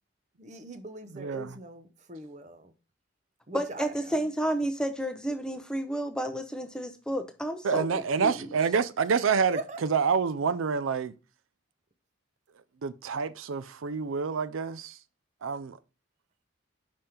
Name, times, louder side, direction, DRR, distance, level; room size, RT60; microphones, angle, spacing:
voice 1, 0.4-2.7 3.5-3.9 9.5-9.8, right 2 dB, 35° right, 0.7 m, -40 dB
voice 2, 1.1-1.6 7.6-11.1 12.8-15.0 15.4-15.8, right 5 dB, 85° right, 0.5 m, -28 dB
voice 3, 3.5-8.3, right 1 dB, 5° left, 0.6 m, -31 dB
5.4 x 5.1 x 4.3 m
head